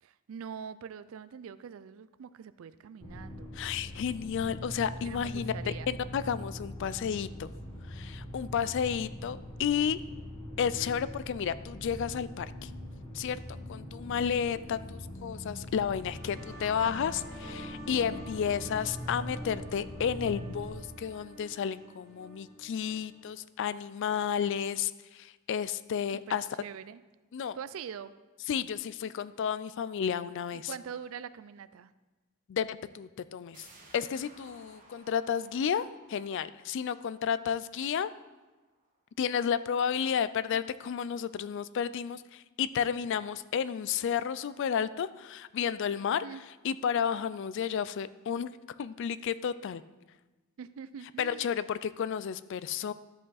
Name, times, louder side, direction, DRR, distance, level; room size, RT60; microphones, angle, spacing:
voice 1, 0.0-3.5 5.0-5.9 26.1-27.0 27.5-28.1 30.5-31.9 46.2-46.4 50.6-51.5, right 7 dB, 70° right, 15 dB, 0.4 m, -44 dB
sound 1, 3.0-20.7, left 1 dB, 20° left, 1.4 m, -42 dB
voice 2, 3.5-7.5 7.9-10.0 10.6-12.7 13.1-13.4 13.7-26.5 27.3-27.6 28.5-30.7 32.5-33.7 33.9-38.1 39.2-46.2 46.6-48.5 48.8-49.8 51.2-52.9, left 7 dB, 55° left, 15 dB, 0.3 m, -32 dB
sound 2, 15.9-23.3, equal, ahead, 1.9 m, -47 dB
sound 3, 33.5-39.0 39.4-39.5, right 2 dB, 40° right, 1.5 m, -59 dB
13.0 x 5.1 x 4.0 m, 1.2 s
head